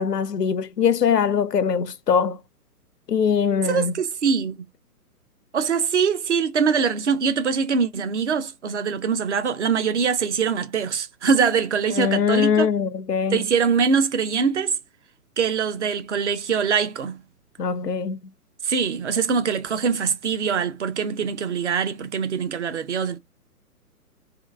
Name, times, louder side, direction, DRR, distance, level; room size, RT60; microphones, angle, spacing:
voice 1, 0.0-2.4 3.1-3.9 11.9-13.4 17.6-18.2, left 6 dB, 90° left, 0.5 m, -22 dB
voice 2, 3.6-4.6 5.5-12.7 13.3-14.8 15.4-17.2 18.6-23.2, right 6 dB, 50° right, 0.6 m, -23 dB
2.8 x 2.4 x 3.3 m
figure-of-eight pair, 125°, 47 cm